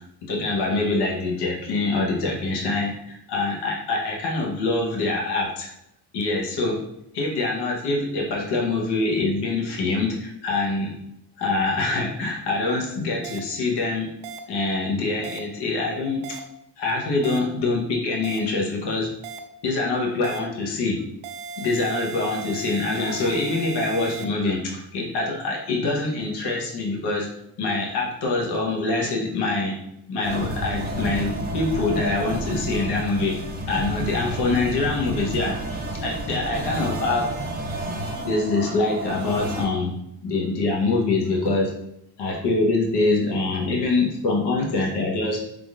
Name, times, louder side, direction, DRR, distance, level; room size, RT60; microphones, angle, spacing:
voice 1, 0.2-5.7 6.1-6.8 7.1-10.9 11.4-14.1 14.5-16.4 16.8-19.1 19.6-21.0 21.6-27.3 27.6-29.8 30.1-33.4 33.7-37.4 38.2-39.9 40.2-41.7 42.2-45.4, left 3 dB, 90° left, -1 dB, 1.1 m, -25 dB
sound 1, 13.2-13.4 14.2-14.4 15.2-15.4 16.2-16.4 17.2-17.4 18.2-18.4 19.2-19.4 20.2-20.4 21.2-24.2, right 5 dB, 85° right, 0.6 m, -36 dB
sound 2, 30.2-39.6, right 1 dB, 25° right, 0.7 m, -30 dB
4.8 x 3.7 x 2.5 m, 0.78 s
cardioid pair, 170°, 39 cm